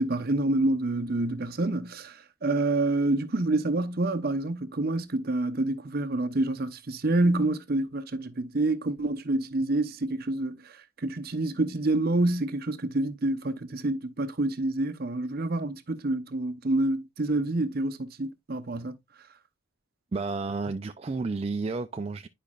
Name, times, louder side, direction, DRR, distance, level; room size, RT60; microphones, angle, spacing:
voice 1, 0.0-18.9, right 2 dB, 45° right, 0.7 m, -27 dB
voice 2, 20.1-22.3, right 3 dB, 30° right, 0.3 m, -31 dB
10.5 x 5.1 x 2.3 m
head